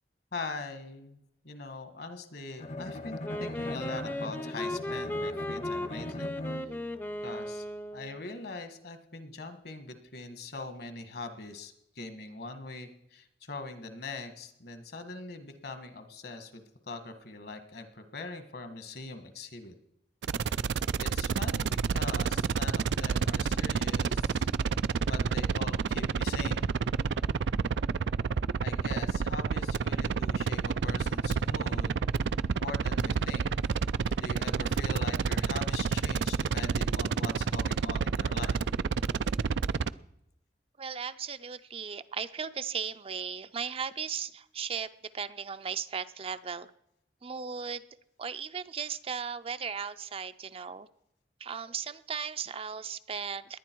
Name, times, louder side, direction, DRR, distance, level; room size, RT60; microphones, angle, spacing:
voice 1, 0.3-1.2 1.4-6.3 7.2-7.6 7.9-19.8 20.5-20.7 21.0-24.5 25.1-26.7 28.2-32.0 32.6-33.5 34.2-38.6, left 3 dB, 65° left, 8 dB, 1.6 m, -42 dB
Bowed string instrument, 2.6-7.0, left 2 dB, 40° left, 0.8 m, -40 dB
Wind instrument woodwind instrument, 3.2-8.2, left 1 dB, 10° left, 0.6 m, -36 dB
sound 1, 20.2-39.9, right 5 dB, 90° right, 0.4 m, -29 dB
voice 2, 40.8-44.9 45.1-46.7 47.2-47.8 48.2-50.9 51.4-53.6, right 6 dB, 35° right, 11 dB, 0.5 m, -36 dB
19.0 x 10.5 x 4.6 m, 0.78 s
head